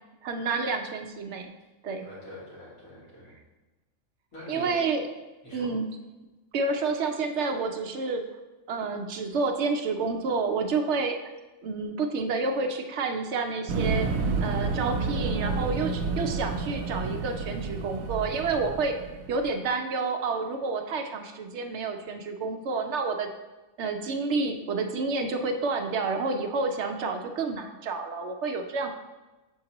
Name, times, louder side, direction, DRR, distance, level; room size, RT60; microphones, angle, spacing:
voice 1, 0.2-1.5 1.8-2.1 4.5-5.1 5.5-5.9 6.5-8.2 8.7-11.2 11.6-19.0 19.3-23.3 23.8-28.9, right 4 dB, 65° right, 5 dB, 0.8 m, -29 dB
voice 2, 2.0-3.4 4.3-4.8 5.4-5.7, left 1 dB, 75° left, -8 dB, 2.8 m, -43 dB
sound 1, 13.7-19.5, right 4 dB, 90° right, 1.0 m, -30 dB
7.1 x 4.7 x 2.9 m, 1.1 s
omnidirectional pair, 1.4 m